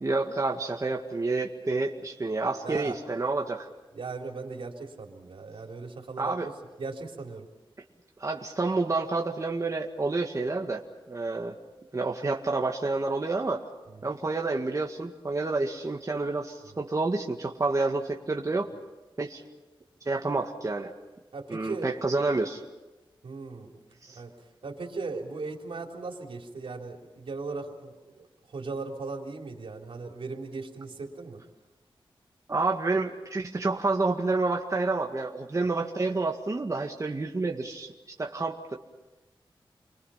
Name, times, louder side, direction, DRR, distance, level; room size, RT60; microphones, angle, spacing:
voice 1, 0.0-3.7 6.2-6.5 8.2-10.8 11.1-11.5 11.9-13.6 14.0-18.7 19.2-19.4 20.1-20.9 21.5-22.6 24.0-24.2 32.5-37.9 38.2-38.8, right 3 dB, 35° right, 1 dB, 2.0 m, -29 dB
voice 2, 2.6-3.0 3.9-6.3 6.8-7.5 13.9-14.1 16.6-16.8 21.3-22.1 23.2-23.7 24.2-24.3 24.6-28.3 28.5-31.4, right 3 dB, 85° right, 1 dB, 3.8 m, -38 dB
30.0 x 24.0 x 5.8 m, 1.1 s
wide cardioid pair, 100°, 9 cm